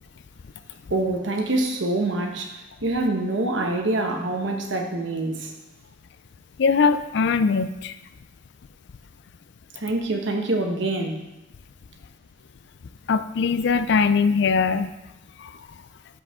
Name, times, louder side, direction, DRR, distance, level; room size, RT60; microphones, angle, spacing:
voice 1, 0.9-5.5 9.7-11.2, right 2 dB, 65° right, 3 dB, 1.1 m, -25 dB
voice 2, 6.6-7.9 13.1-14.9 15.4-15.5, left 5 dB, 60° left, 12 dB, 0.4 m, -21 dB
13.0 x 4.8 x 3.6 m, 0.96 s
head